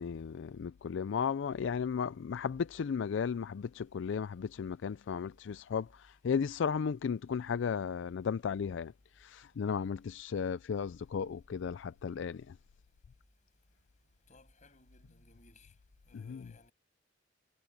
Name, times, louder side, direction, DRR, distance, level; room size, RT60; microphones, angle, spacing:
voice 1, 0.0-12.5 16.1-16.5, left 6 dB, 70° left, 0.4 m, -35 dB
voice 2, 14.3-15.7 16.1-16.7, left 2 dB, 40° left, 7.8 m, -61 dB
head